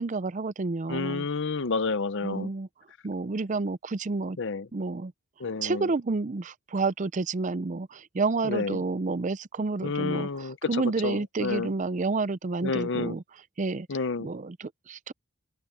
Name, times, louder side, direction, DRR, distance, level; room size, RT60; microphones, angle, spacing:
voice 1, 0.0-1.3 2.2-2.7 3.0-4.4 4.7-5.1 5.6-10.3 10.7-13.2 13.6-13.9 14.2-15.1, right 3 dB, 35° right, 0.5 m, -29 dB
voice 2, 0.9-2.5 4.4-4.7 5.4-5.9 8.4-8.8 9.8-11.7 12.6-13.2 13.9-14.3, left 4 dB, 55° left, 0.7 m, -30 dB
open air
head